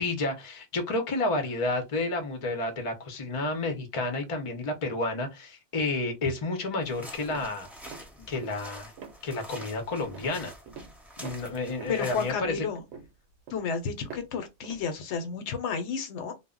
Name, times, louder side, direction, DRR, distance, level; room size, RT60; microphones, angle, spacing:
voice 1, 0.0-7.7 8.3-8.9 9.2-10.5 11.2-12.6, left 2 dB, 35° left, 0.5 m, -30 dB
sound 1, 6.8-12.3, equal, ahead, 0.8 m, -47 dB
sound 2, 7.3-8.1 8.4-8.6 9.0-9.2 9.5-9.8 10.1-10.4 10.7-11.0 11.2-14.3 14.6-14.9, right 6 dB, 70° right, 0.9 m, -45 dB
voice 2, 11.9-12.8 13.5-16.3, left 6 dB, 80° left, 0.9 m, -32 dB
2.1 x 2.0 x 3.6 m
omnidirectional pair, 1.2 m